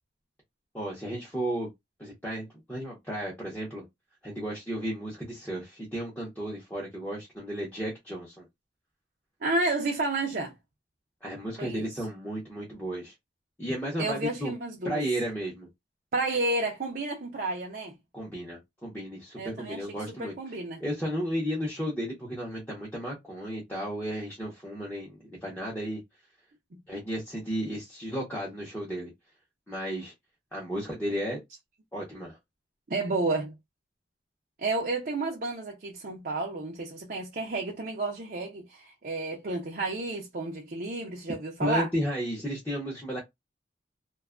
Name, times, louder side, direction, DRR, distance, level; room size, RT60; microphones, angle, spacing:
voice 1, 0.7-1.7 2.0-3.8 4.2-8.4 11.2-13.1 13.6-14.5 14.8-15.7 18.1-20.3 20.8-26.0 26.9-29.1 29.7-30.1 30.5-31.4 31.9-32.4 41.6-43.2, equal, 10° left, 0.7 m, -33 dB
voice 2, 9.4-10.5 11.6-11.9 14.0-15.0 16.1-18.0 19.4-20.8 32.9-33.5 34.6-41.9, right 2 dB, 50° right, 0.5 m, -31 dB
2.6 x 2.3 x 2.4 m
head